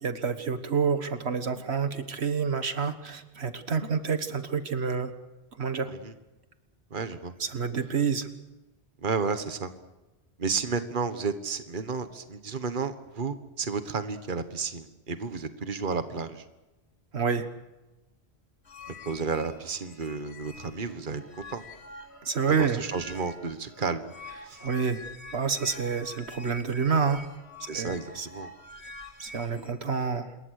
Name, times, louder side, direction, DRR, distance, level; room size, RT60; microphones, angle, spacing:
voice 1, 0.0-5.1 5.6-5.9 7.4-8.3 17.1-17.5 22.2-22.8 24.6-25.0 25.3-27.2 27.6-28.3 29.2-30.3, right 6 dB, 80° right, 9 dB, 1.7 m, -28 dB
voice 2, 6.9-7.3 9.0-9.7 10.4-16.4 19.0-21.2 21.5-21.6 22.5-24.1 24.4-24.6 27.7-28.5, right 5 dB, 50° right, 9 dB, 1.6 m, -32 dB
sound 1, 18.6-29.7, left 2 dB, 85° left, 2.8 m, -46 dB
27.5 x 22.0 x 6.5 m, 1.1 s
omnidirectional pair, 1.1 m